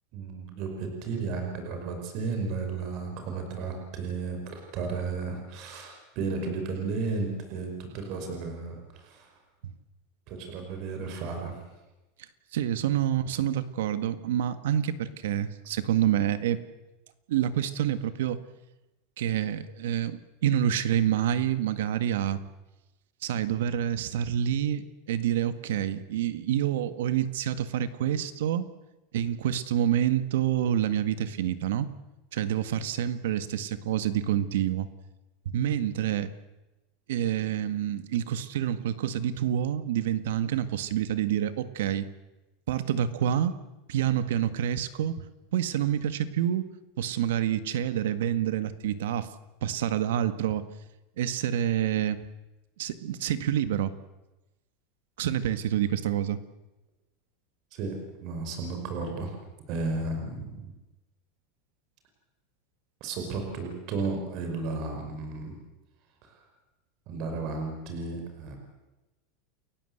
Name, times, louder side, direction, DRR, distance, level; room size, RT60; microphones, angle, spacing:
voice 1, 0.1-9.3 10.3-11.6 57.7-57.9 58.2-59.3 59.7-60.7 63.0-65.6 66.2-66.3 67.1-68.6, right 4 dB, 40° right, 4 dB, 5.3 m, -33 dB
voice 2, 12.5-16.6 17.3-18.4 19.2-22.4 23.2-28.6 29.1-31.9 32.3-34.9 35.5-36.3 37.1-42.1 42.7-43.5 43.9-45.2 45.5-46.6 47.0-49.3 49.6-50.7 51.2-52.2 52.8-53.9 55.2-56.4, right 10 dB, 80° right, 12 dB, 1.8 m, -27 dB
29.5 x 16.0 x 8.1 m, 1.0 s
supercardioid pair, 170°, 0 cm